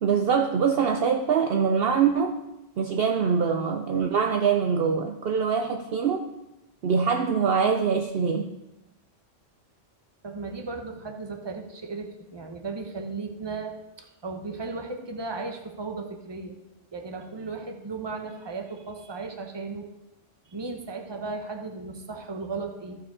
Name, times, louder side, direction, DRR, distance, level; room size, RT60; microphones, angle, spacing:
voice 1, 0.0-2.4 2.8-6.2 6.8-8.5, right 6 dB, 60° right, 4 dB, 0.7 m, -24 dB
voice 2, 10.2-16.6 16.9-19.9 20.5-23.0, right 3 dB, 25° right, 4 dB, 0.9 m, -36 dB
14.0 x 5.1 x 4.8 m, 0.96 s
omnidirectional pair, 1.3 m